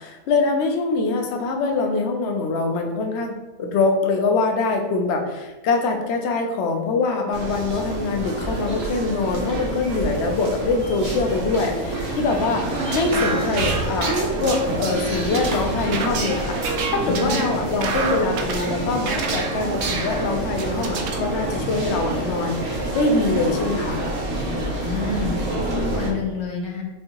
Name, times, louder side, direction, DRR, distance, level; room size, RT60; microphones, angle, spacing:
voice 1, 0.0-24.1, left 3 dB, 65° left, 3 dB, 0.7 m, -24 dB
sound 1, 7.3-26.1, right 1 dB, 80° right, 1.4 m, -28 dB
sound 2, 11.7-18.2, right 1 dB, 30° right, 0.9 m, -37 dB
sound 3, 12.7-21.2, right 4 dB, 65° right, 0.7 m, -29 dB
voice 2, 24.8-26.8, left 4 dB, 80° left, 0 dB, 1.4 m, -28 dB
5.3 x 2.7 x 2.9 m, 1.1 s
omnidirectional pair, 1.6 m